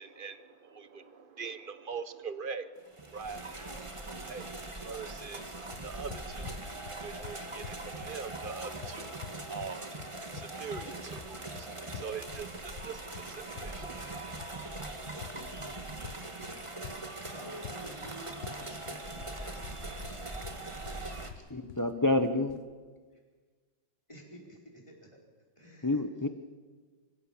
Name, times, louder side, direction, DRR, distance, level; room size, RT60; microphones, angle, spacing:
voice 1, 0.0-3.4 4.3-6.6 7.0-10.0 10.3-14.6, right 5 dB, 45° right, 12 dB, 0.7 m, -43 dB
sound 1, 2.9-21.3, right 2 dB, 15° right, 1.5 m, -41 dB
sound 2, 5.7-22.7, left 10 dB, 75° left, 1.7 m, -48 dB
voice 2, 15.3-16.6 17.3-20.2 21.0-21.5 24.1-25.1 25.6-26.0, equal, 15° left, -1 dB, 4.7 m, -51 dB
voice 3, 21.5-22.6 25.8-26.3, left 2 dB, 30° left, 9 dB, 0.3 m, -28 dB
26.0 x 16.0 x 7.3 m, 1.5 s
omnidirectional pair, 2.2 m